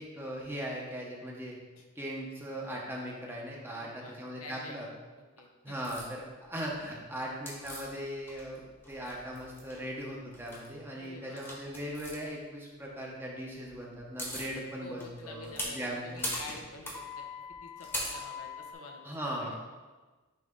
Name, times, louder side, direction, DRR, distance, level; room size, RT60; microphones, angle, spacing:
voice 1, 0.0-1.6 1.9-4.9 5.6-16.4 19.0-19.6, equal, 10° right, -3 dB, 1.0 m, -39 dB
voice 2, 3.6-4.8 5.4-5.7 11.0-11.4 14.8-17.3 17.6-19.1 19.4-19.6, left 3 dB, 80° left, 2 dB, 0.9 m, -48 dB
sound 1, 5.8-6.1 7.5-8.6 8.8-9.8 10.3-10.7 11.4-12.2 13.7-13.8 13.9-14.5 15.0-18.7, left 1 dB, 10° left, 1.2 m, -39 dB
9.5 x 3.4 x 3.8 m, 1.3 s
head